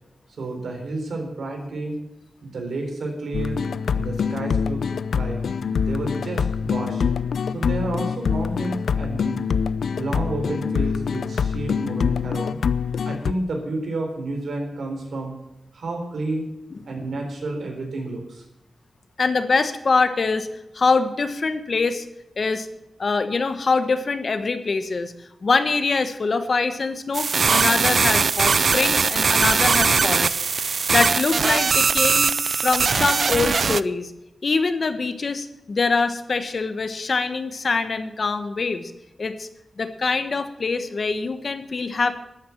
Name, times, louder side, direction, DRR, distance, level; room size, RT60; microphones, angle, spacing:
voice 1, 0.4-2.0 2.4-3.6 3.9-4.8 5.1-5.4 5.8-7.1 7.5-9.4 10.0-12.6 13.0-15.3 15.7-16.5 16.9-18.4, right 2 dB, 85° right, 2 dB, 4.2 m, -30 dB
sound 1, 3.3-13.3, left 6 dB, 90° left, 0.5 m, -25 dB
voice 2, 19.2-20.5 20.7-22.0 22.4-22.7 23.0-25.1 25.4-30.3 30.9-32.3 32.6-34.1 34.4-38.9 39.2-39.5 39.8-42.1, left 4 dB, 45° left, 9 dB, 1.2 m, -24 dB
sound 2, 27.1-33.8, right 5 dB, 55° right, 0.4 m, -20 dB
13.0 x 9.6 x 7.2 m, 0.93 s
wide cardioid pair, 150°, 0 cm